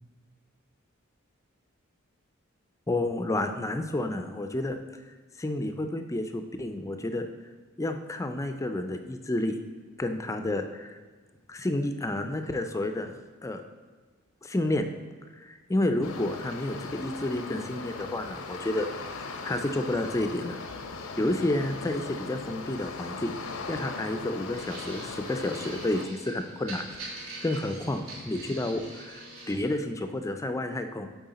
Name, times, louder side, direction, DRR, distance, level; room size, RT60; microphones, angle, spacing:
voice 1, 2.9-4.8 5.4-7.3 7.8-9.6 10.0-11.0 11.5-13.6 14.4-14.9 15.4-18.9 19.4-20.6 21.2-23.4 23.7-31.1, left 1 dB, 15° left, 7 dB, 0.4 m, -30 dB
sound 1, 16.0-26.1, left 4 dB, 80° left, 0.6 m, -39 dB
sound 2, 24.5-29.5, right 2 dB, 70° right, 1.7 m, -43 dB
7.6 x 4.7 x 4.1 m, 1.4 s
head